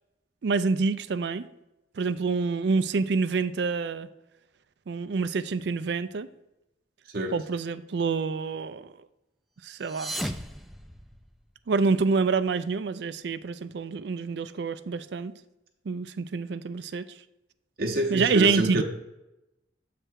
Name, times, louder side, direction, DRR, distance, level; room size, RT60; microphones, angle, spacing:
voice 1, 0.4-1.5 2.0-4.1 4.9-6.3 7.3-8.9 9.6-10.2 11.7-15.3 15.9-17.0 18.1-18.8, right 4 dB, 65° right, 14 dB, 0.4 m, -27 dB
sound 1, 9.7-11.6, equal, ahead, 0.3 m, -36 dB
voice 2, 17.8-18.8, right 1 dB, 50° right, 0 dB, 0.8 m, -27 dB
7.7 x 3.4 x 6.2 m, 0.93 s
head